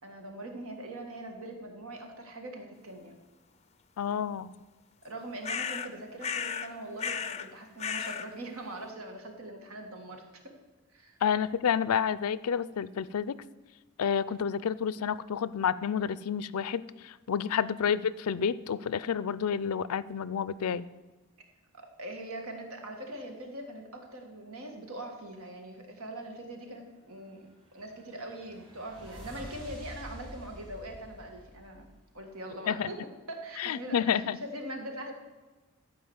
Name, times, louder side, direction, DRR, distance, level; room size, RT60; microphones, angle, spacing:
voice 1, 0.0-3.2 5.0-10.5 10.9-11.2 17.4-17.6 21.7-31.9 32.1-35.1, right 1 dB, 85° right, 3 dB, 1.8 m, -42 dB
voice 2, 4.0-4.5 11.2-13.4 14.0-20.9 32.7-32.9 33.6-34.4, left 7 dB, 90° left, 17 dB, 0.4 m, -29 dB
sound 1, 5.4-5.9 6.2-6.7 7.0-7.5 7.8-8.3, left 7 dB, 30° left, 0.4 m, -34 dB
sound 2, 27.4-32.3, left 1 dB, 25° right, 2.2 m, -48 dB
13.0 x 4.9 x 7.9 m, 1.2 s
head